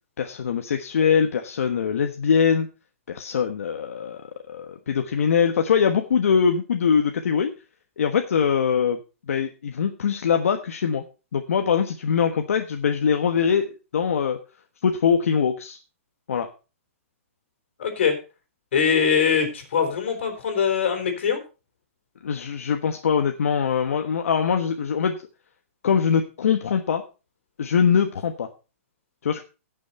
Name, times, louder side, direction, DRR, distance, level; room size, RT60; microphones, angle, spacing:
voice 1, 0.2-2.7 3.1-4.2 4.5-7.5 8.0-9.0 9.3-11.0 11.3-14.4 14.8-15.8 16.3-16.5 22.2-25.2 25.8-27.0 27.6-28.5 29.2-29.4, left 7 dB, 75° left, 5 dB, 1.3 m, -22 dB
voice 2, 17.8-18.2 18.7-21.4, left 7 dB, 55° left, 5 dB, 4.0 m, -22 dB
17.0 x 6.4 x 4.3 m, 0.32 s
hypercardioid pair, 175°, 8 cm